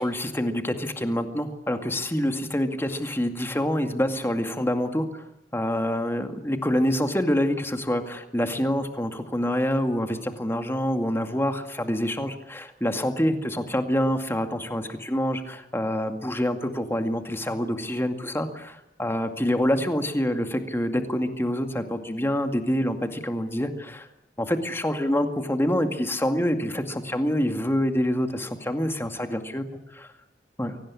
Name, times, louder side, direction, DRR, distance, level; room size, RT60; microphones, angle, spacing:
voice 1, 0.0-5.2 5.5-24.1 24.4-29.6 30.0-30.1 30.6-30.7, equal, 15° left, 6 dB, 2.3 m, -26 dB
24.0 x 18.0 x 9.9 m, 0.83 s
head